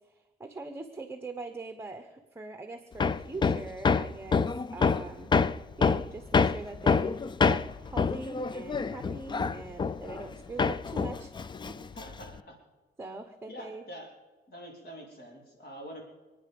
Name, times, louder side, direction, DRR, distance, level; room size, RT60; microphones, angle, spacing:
voice 1, 0.0-5.3 5.8-11.3 11.6-11.8 13.0-13.8, right 3 dB, 15° right, 7 dB, 1.0 m, -42 dB
Hammer, 3.0-10.3 10.6-12.4, left 5 dB, 25° left, 0.4 m, -27 dB
voice 2, 11.9-12.6 13.5-14.1 14.5-16.0, equal, 60° left, 0 dB, 3.5 m, -45 dB
27.5 x 9.4 x 5.3 m, 1.3 s
wide cardioid pair, 155°, 18 cm